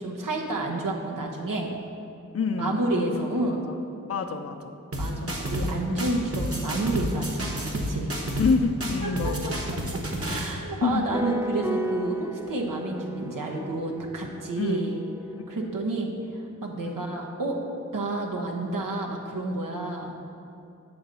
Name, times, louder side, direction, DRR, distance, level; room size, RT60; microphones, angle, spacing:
voice 1, 0.0-1.7 2.6-3.6 5.0-8.1 9.0-9.3 10.2-15.0 15.5-17.6 17.9-20.1, right 2 dB, 80° right, 0 dB, 1.1 m, -30 dB
voice 2, 2.3-3.3 4.1-4.7 5.2-5.4 8.4-9.6 10.8-11.0 14.6-15.0 15.6-15.7 16.8-17.0, left 4 dB, 50° left, 5 dB, 0.6 m, -27 dB
sound 1, 4.9-5.7 6.0-8.5 8.8-10.5, equal, 45° right, 1.2 m, -30 dB
sound 2, 11.1-15.8, equal, 10° right, 0.4 m, -34 dB
7.9 x 3.9 x 6.8 m, 2.7 s
cardioid pair, 50°, 32 cm